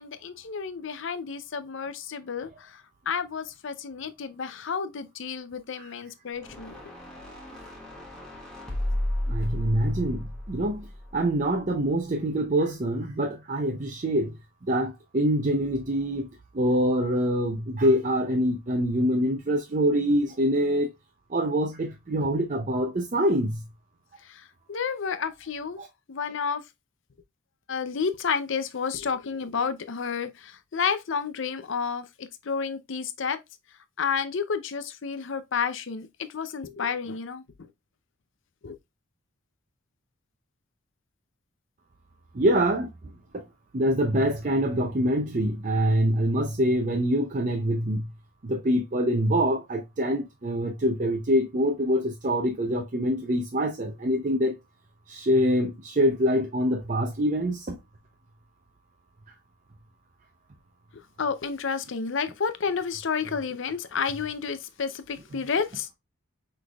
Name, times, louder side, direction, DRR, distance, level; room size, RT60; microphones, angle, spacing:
voice 1, 0.0-6.8 24.2-25.8 26.1-26.6 27.7-33.4 34.0-37.7 38.6-38.8 61.2-65.9, left 6 dB, 55° left, 0.5 m, -31 dB
sound 1, 6.3-11.6, left 1 dB, 5° left, 1.2 m, -33 dB
voice 2, 9.3-10.9 11.1-14.3 14.7-16.3 16.5-20.9 21.3-23.6 25.8-25.9 42.3-42.9 43.3-43.4 43.7-48.1 48.4-54.6 55.1-57.8, equal, 35° right, 0.5 m, -25 dB
6.0 x 3.3 x 2.3 m
head